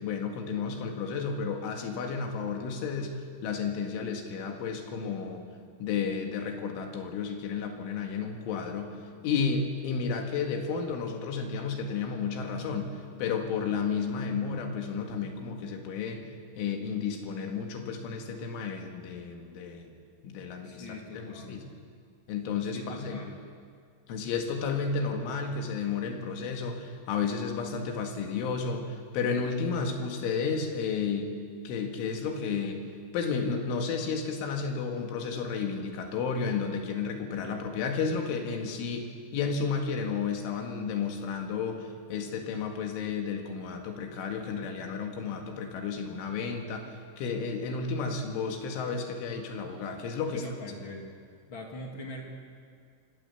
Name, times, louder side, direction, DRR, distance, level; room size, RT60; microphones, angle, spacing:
voice 1, 0.0-5.4 5.8-9.0 9.2-16.3 16.6-19.9 20.2-20.9 21.1-21.6 22.3-23.2 24.1-31.3 31.7-32.8 33.1-39.1 39.3-50.4, left 5 dB, 85° left, 3 dB, 4.4 m, -32 dB
voice 2, 20.6-21.6 22.7-23.4 50.3-51.1 51.5-52.3, left 2 dB, 50° left, 1 dB, 1.4 m, -42 dB
25.0 x 17.5 x 7.1 m, 2.1 s
omnidirectional pair, 5.4 m